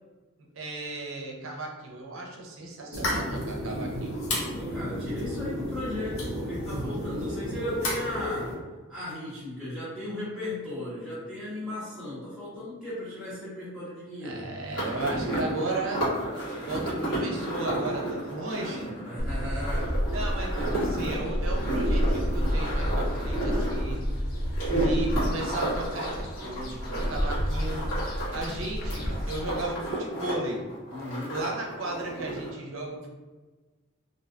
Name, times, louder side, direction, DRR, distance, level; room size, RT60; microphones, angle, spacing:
voice 1, 0.5-4.2 14.2-16.1 16.7-18.9 20.1-24.0 24.7-27.8 28.3-30.6 31.3-33.1, right 2 dB, 70° right, 0 dB, 0.5 m, -35 dB
sound 1, 2.9-8.5, left 1 dB, 80° left, 0.7 m, -32 dB
voice 2, 4.5-8.5 8.9-14.5 19.0-19.9 30.9-31.3, left 1 dB, ahead, -12 dB, 0.6 m, -36 dB
sound 2, 14.7-28.5 28.8-30.3 30.6-32.5, right 1 dB, 60° left, 1.3 m, -32 dB
sound 3, 19.2-29.7, equal, 45° left, 0.4 m, -30 dB
2.5 x 2.2 x 2.4 m, 1.3 s
head